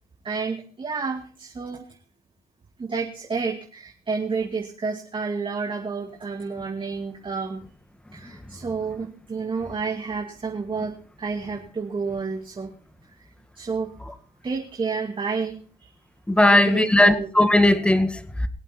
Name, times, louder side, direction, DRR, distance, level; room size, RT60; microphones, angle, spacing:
voice 1, 0.2-1.9 2.8-7.6 8.1-10.9 11.2-12.7 13.6-13.9 14.4-15.9 16.4-17.3, right 4 dB, 30° right, 2.2 m, -30 dB
voice 2, 16.3-18.5, left 1 dB, 5° left, 1.7 m, -18 dB
22.0 x 8.2 x 4.3 m
cardioid pair, 85°, 16 cm